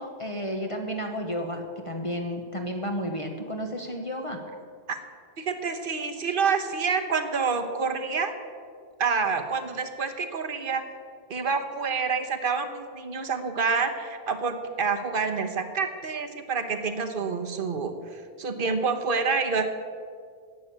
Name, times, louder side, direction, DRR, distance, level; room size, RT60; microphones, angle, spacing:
voice 1, 0.0-4.4, equal, 35° left, 3 dB, 1.0 m, -32 dB
voice 2, 5.4-8.3 9.0-10.8 11.3-19.6, right 5 dB, 60° right, 7 dB, 1.2 m, -28 dB
10.5 x 8.5 x 8.5 m, 2.1 s
omnidirectional pair, 1.0 m